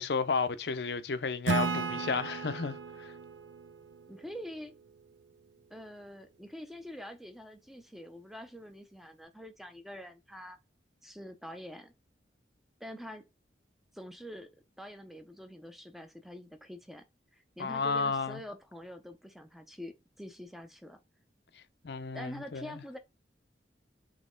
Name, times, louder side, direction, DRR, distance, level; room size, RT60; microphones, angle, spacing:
voice 1, 0.0-3.1 17.6-18.4 21.6-22.8, left 5 dB, 65° left, 0.5 m, -33 dB
Acoustic guitar / Strum, 1.5-4.9, right 4 dB, 85° right, 0.5 m, -35 dB
voice 2, 4.1-4.7 5.7-10.6 11.0-11.9 12.8-13.2 13.9-14.5 14.8-17.1 17.3-21.0 22.1-23.0, equal, ahead, 0.5 m, -45 dB
4.1 x 3.0 x 3.7 m
head